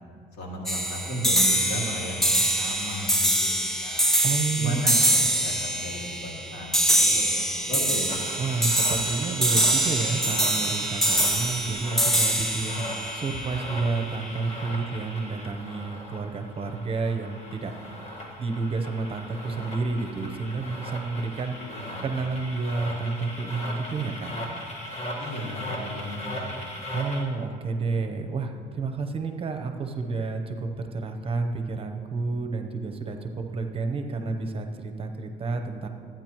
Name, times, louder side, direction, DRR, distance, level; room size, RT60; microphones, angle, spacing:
voice 1, 0.3-4.1 4.6-8.1 21.6-22.2 25.2-26.5, equal, 85° left, -3 dB, 2.4 m, -35 dB
sound 1, 0.7-14.1, right 1 dB, ahead, 0.7 m, -24 dB
voice 2, 4.2-5.0 8.4-12.8 13.1-17.7 18.4-21.6 22.0-24.3 26.9-35.9, right 4 dB, 35° right, 5 dB, 0.8 m, -30 dB
sound 2, 8.1-27.2, left 1 dB, 40° left, 1.6 m, -38 dB
13.5 x 8.9 x 3.0 m, 2.1 s
cardioid pair, 110°, 17 cm